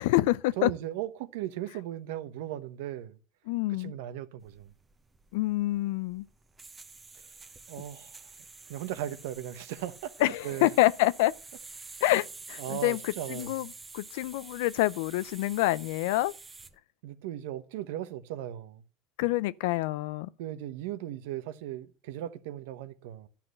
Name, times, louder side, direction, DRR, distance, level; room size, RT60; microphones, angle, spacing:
voice 1, 0.0-0.7 3.5-3.9 5.3-6.3 10.2-11.3 12.0-13.7 13.9-16.3 19.2-20.3, left 17 dB, 80° left, 0.5 m, -27 dB
voice 2, 0.6-3.1 3.7-4.7 7.7-8.2 8.7-10.7 12.6-13.5 17.0-18.8 20.4-23.3, right 12 dB, 80° right, 1.0 m, -37 dB
sound 1, 4.4-16.8, right 4 dB, 20° right, 1.0 m, -48 dB
12.0 x 5.8 x 7.7 m
supercardioid pair, 115°, 0 cm